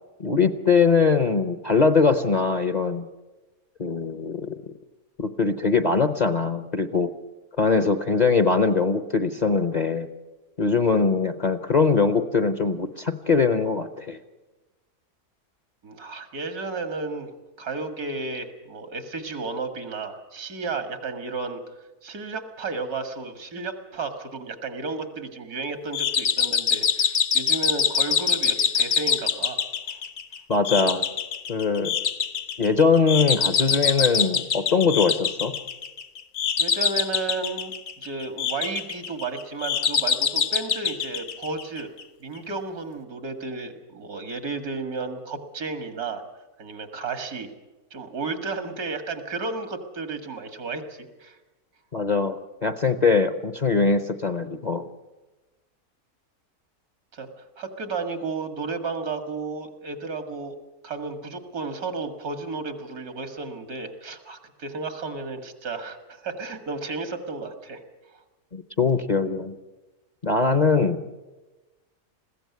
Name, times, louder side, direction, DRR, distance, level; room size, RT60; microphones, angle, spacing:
voice 1, 0.2-3.1 3.8-4.6 5.2-7.1 7.6-10.1 10.6-14.2 30.5-31.1 31.5-32.0 32.6-35.6 51.9-54.9 68.5-69.5 70.2-71.2, left 4 dB, 35° left, 10 dB, 0.8 m, -22 dB
voice 2, 15.8-17.3 17.6-21.6 22.0-29.6 29.9-30.0 36.6-41.9 42.2-46.2 46.6-47.5 47.9-51.4 57.1-60.6 60.8-67.8, right 3 dB, 85° right, 8 dB, 2.5 m, -33 dB
sound 1, 25.9-42.0, left 6 dB, 55° left, 1.2 m, -25 dB
21.0 x 16.0 x 9.4 m, 1.1 s
omnidirectional pair, 1.6 m